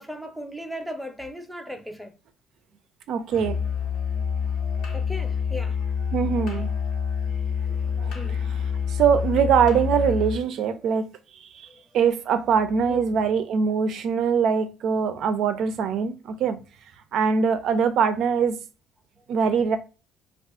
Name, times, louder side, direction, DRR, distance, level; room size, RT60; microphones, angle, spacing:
voice 1, 0.0-2.1 4.9-5.8 8.1-8.5 11.7-11.8 12.9-13.2, equal, ahead, 0.7 m, -37 dB
voice 2, 3.1-3.6 6.1-6.7 8.0-8.1 8.9-11.1 11.5-11.7 11.9-16.6 17.1-18.6 19.3-19.8, right 6 dB, 65° right, 0.5 m, -22 dB
Musical instrument, 3.3-10.4, left 6 dB, 75° left, 1.0 m, -27 dB
2.4 x 2.4 x 3.5 m
supercardioid pair, 80°, 0 cm